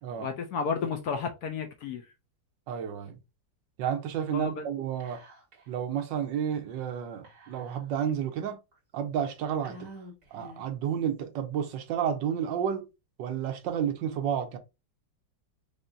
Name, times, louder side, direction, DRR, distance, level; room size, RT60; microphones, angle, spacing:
voice 1, 0.2-2.1 4.3-4.6, left 5 dB, 70° left, 1.0 m, -32 dB
voice 2, 2.7-3.2 3.8-5.2 5.7-8.6 8.9-9.9 10.3-12.8 13.2-14.6, right 8 dB, 75° right, 1.4 m, -31 dB
Whispering, 5.0-5.7 6.0-6.1 7.2-8.1 8.7-8.8 9.6-10.8, right 1 dB, 45° right, 2.0 m, -49 dB
5.0 x 2.7 x 2.5 m
omnidirectional pair, 2.0 m